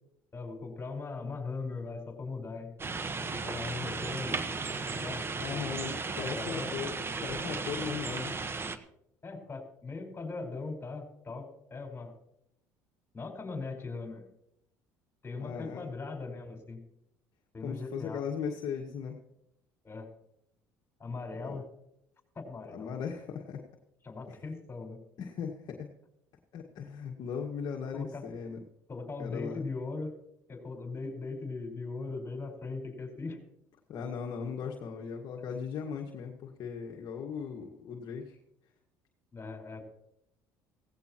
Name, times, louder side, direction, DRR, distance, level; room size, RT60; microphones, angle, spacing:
voice 1, 0.3-2.7 3.4-4.4 4.9-5.7 6.2-6.8 9.2-12.1 13.1-14.3 15.2-16.8 17.5-18.2 19.8-20.1 21.0-21.7 22.3-22.9 24.0-25.0 27.9-28.2 28.9-30.2 30.5-33.4 39.3-39.8, left 3 dB, 25° left, 3 dB, 4.9 m, -39 dB
sound 1, 2.8-8.8, right 4 dB, 30° right, 1.3 m, -35 dB
voice 2, 5.4-8.4 15.4-15.8 17.6-19.2 21.4-21.6 22.7-23.6 25.2-25.9 26.5-28.6 29.2-29.6 33.9-38.4, left 6 dB, 55° left, 0 dB, 1.8 m, -38 dB
17.0 x 16.0 x 3.0 m, 0.78 s
hypercardioid pair, 70°, 8 cm